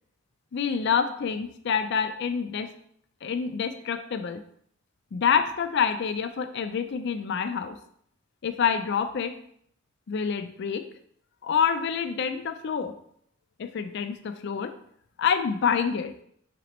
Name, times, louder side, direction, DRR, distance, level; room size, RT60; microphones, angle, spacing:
voice 1, 0.5-2.7 3.2-4.4 5.1-7.8 8.4-9.4 10.1-10.8 11.4-12.9 13.6-14.7 15.2-16.1, left 7 dB, 60° left, 9 dB, 0.4 m, -27 dB
5.9 x 3.0 x 3.0 m, 0.66 s
head